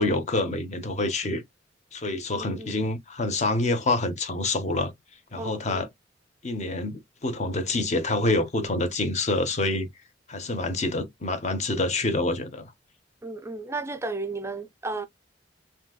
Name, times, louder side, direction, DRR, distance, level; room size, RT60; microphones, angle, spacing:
voice 1, 0.0-1.4 1.9-4.9 5.3-5.9 6.4-9.9 10.3-12.7, left 2 dB, 40° left, 0.7 m, -27 dB
voice 2, 2.3-2.8 5.4-5.9 13.2-15.1, right 3 dB, 15° right, 0.4 m, -34 dB
3.8 x 2.7 x 2.3 m
head